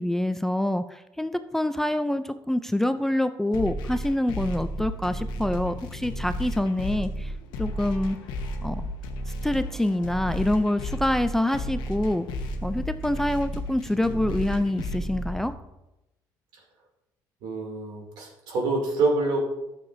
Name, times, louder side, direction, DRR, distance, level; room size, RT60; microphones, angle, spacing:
voice 1, 0.0-7.3 7.6-8.2 8.6-8.8 9.4-12.3 12.6-15.5, left 1 dB, 5° left, 10 dB, 0.3 m, -26 dB
sound 1, 3.5-15.5, equal, 75° left, 0.9 m, -33 dB
voice 2, 17.4-19.4, right 3 dB, 80° right, -1 dB, 2.7 m, -26 dB
12.5 x 6.7 x 2.7 m, 0.93 s
cardioid pair, 140°, 8 cm